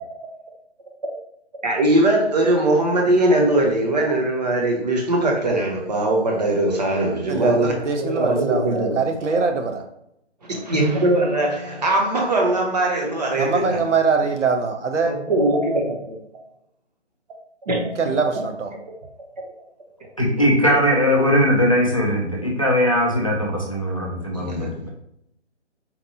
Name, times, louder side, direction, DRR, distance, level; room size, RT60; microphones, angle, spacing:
voice 1, 1.6-9.0 9.3-9.4 10.5-13.8 15.1-16.1 17.6-17.9 24.2-24.7, right 1 dB, 35° right, 0 dB, 0.7 m, -21 dB
voice 2, 7.3-9.8 13.4-15.1 18.0-18.7, right 4 dB, 80° right, 5 dB, 0.8 m, -23 dB
voice 3, 20.2-24.9, equal, 30° left, -3 dB, 0.4 m, -20 dB
4.1 x 2.1 x 2.8 m, 0.75 s
figure-of-eight pair, 160°, 35 cm